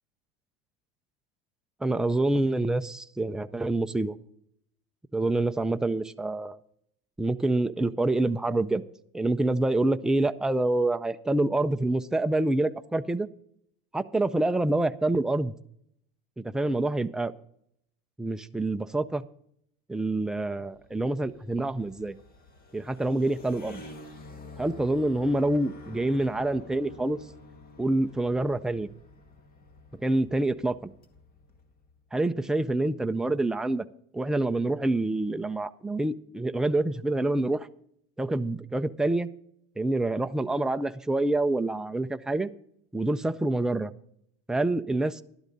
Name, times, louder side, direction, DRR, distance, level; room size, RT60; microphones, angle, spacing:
voice 1, 1.8-4.2 5.1-6.6 7.2-8.8 9.1-13.3 13.9-15.5 16.4-17.3 18.2-19.2 19.9-22.1 22.7-23.8 24.6-27.2 27.8-28.9 30.0-30.9 32.1-33.8 34.1-37.7 38.2-39.3 39.8-42.5 42.9-43.9 44.5-45.2, right 2 dB, ahead, 9 dB, 0.3 m, -26 dB
sound 1, 20.4-32.0, left 2 dB, 30° left, 1.9 m, -49 dB
12.0 x 12.0 x 3.9 m, 0.70 s
supercardioid pair, 130°, 29 cm